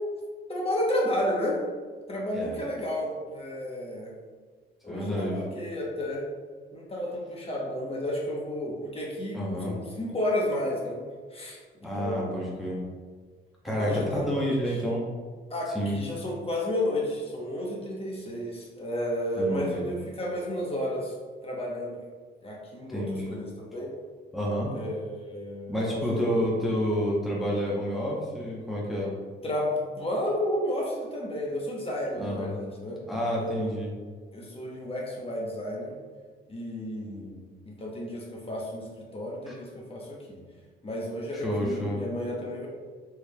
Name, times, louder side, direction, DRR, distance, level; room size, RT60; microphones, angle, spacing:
voice 1, 0.5-1.6 2.1-4.1 4.8-6.2 6.7-11.0 11.3-12.4 13.7-14.8 15.5-21.1 21.4-22.0 22.4-23.9 24.7-26.5 29.4-33.0 33.4-33.7 34.3-36.0 36.5-38.9 39.1-40.4 40.8-42.7, left 1 dB, 30° left, -3 dB, 0.9 m, -32 dB
voice 2, 4.9-5.4 9.3-9.7 11.8-12.8 13.6-15.0 15.7-16.0 19.4-19.9 22.9-23.4 24.3-24.7 25.7-29.1 32.2-32.5 33.1-33.9 39.5-39.6 41.3-42.0, equal, ahead, -4 dB, 0.8 m, -29 dB
4.6 x 3.2 x 2.2 m, 1.5 s
cardioid pair, 90°, 20 cm